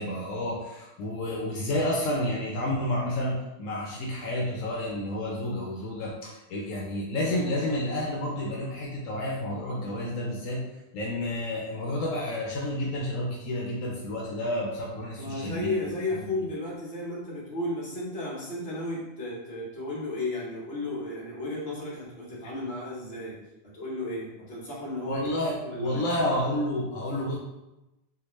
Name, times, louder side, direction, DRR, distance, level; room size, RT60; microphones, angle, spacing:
voice 1, 0.0-10.6 10.9-16.5 25.1-27.4, left 1 dB, 85° left, -3 dB, 1.1 m, -30 dB
voice 2, 15.1-23.4 23.7-25.3 25.6-26.4, left 2 dB, 50° left, -6 dB, 1.4 m, -34 dB
3.5 x 2.5 x 3.1 m, 0.97 s
omnidirectional pair, 1.3 m